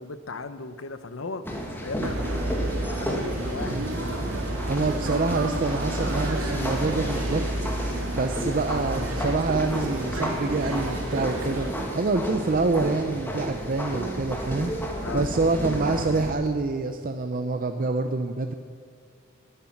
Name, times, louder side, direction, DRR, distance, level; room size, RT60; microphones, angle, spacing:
voice 1, 0.0-1.5 1.7-2.3 3.0-4.2 4.9-5.0 15.0-15.3, left 3 dB, 70° left, 11 dB, 0.9 m, -37 dB
sound 1, 1.4-16.3, equal, 10° left, 2.0 m, -33 dB
sound 2, 2.0-11.7, right 1 dB, 75° right, 2.2 m, -30 dB
voice 2, 4.7-7.4 7.8-11.7 11.9-14.7 15.1-18.5, right 3 dB, 45° right, 6 dB, 0.6 m, -26 dB
19.5 x 10.5 x 5.9 m, 2.2 s
head